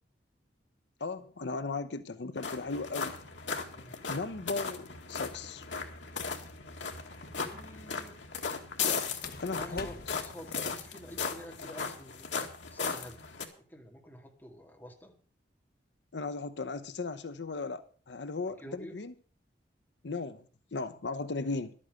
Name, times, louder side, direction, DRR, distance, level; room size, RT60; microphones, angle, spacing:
voice 1, 1.0-3.2 4.1-5.7 9.4-10.2 16.1-19.1 20.0-20.4 20.7-21.7, left 3 dB, 70° left, 0.7 m, -36 dB
sound 1, 2.4-13.4, left 5 dB, 85° left, 2.0 m, -37 dB
sound 2, 6.0-6.7 9.1-11.1, left 3 dB, 55° left, 1.2 m, -47 dB
voice 2, 7.4-8.2 9.5-12.3 12.7-13.2 13.7-15.1 18.4-19.0, equal, 10° left, 2.5 m, -48 dB
12.0 x 8.6 x 6.7 m
head